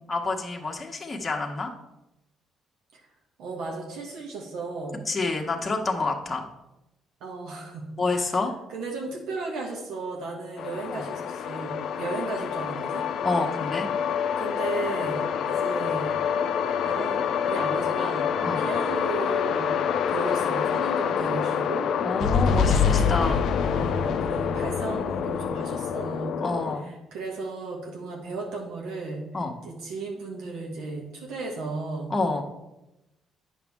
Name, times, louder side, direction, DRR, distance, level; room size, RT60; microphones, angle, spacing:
voice 1, 0.1-1.7 5.1-6.5 8.0-8.5 10.9-11.1 13.2-13.9 18.4-18.6 22.0-23.4 26.4-26.9 29.3-29.5 32.1-32.4, left 3 dB, 25° left, 1 dB, 1.3 m, -28 dB
voice 2, 3.4-5.0 7.2-13.0 14.4-16.1 16.8-17.2 17.5-22.1 22.4-26.3 26.8-32.1, right 3 dB, 80° right, 0 dB, 1.4 m, -35 dB
sound 1, 10.6-26.8, left 7 dB, 70° left, 0.5 m, -26 dB
8.6 x 6.2 x 3.6 m, 0.94 s
supercardioid pair, 65°, 0 cm